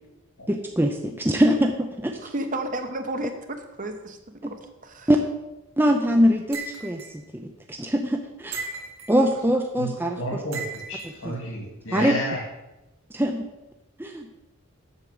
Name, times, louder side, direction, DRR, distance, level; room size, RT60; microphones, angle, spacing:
voice 1, 0.5-2.2 4.4-4.5 5.1-5.2 5.8-8.6 9.1-10.2 11.2-11.3 11.9-12.2 13.1-13.4 14.0-14.3, equal, 10° right, 3 dB, 0.6 m, -23 dB
voice 2, 2.3-5.1, right 1 dB, 40° right, 6 dB, 1.0 m, -32 dB
sound 1, 6.5-7.1 8.5-9.2 10.5-11.1, right 4 dB, 65° right, 2.3 m, -35 dB
voice 3, 10.2-12.4, equal, 70° left, -3 dB, 2.4 m, -31 dB
8.2 x 7.5 x 7.0 m, 0.98 s
head